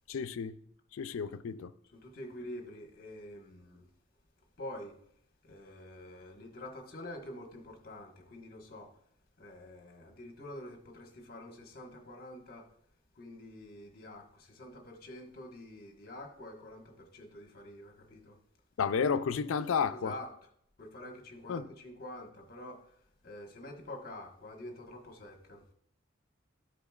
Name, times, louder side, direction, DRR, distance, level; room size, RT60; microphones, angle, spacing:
voice 1, 0.1-0.6 0.9-1.7 18.8-20.1 21.5-21.7, left 6 dB, 85° left, 0.4 m, -31 dB
voice 2, 1.8-3.8 4.6-4.9 5.4-8.9 9.4-12.6 13.1-18.4 19.9-20.3 20.8-22.8 23.2-25.6, left 1 dB, 45° left, 1.3 m, -47 dB
14.0 x 5.1 x 2.4 m
head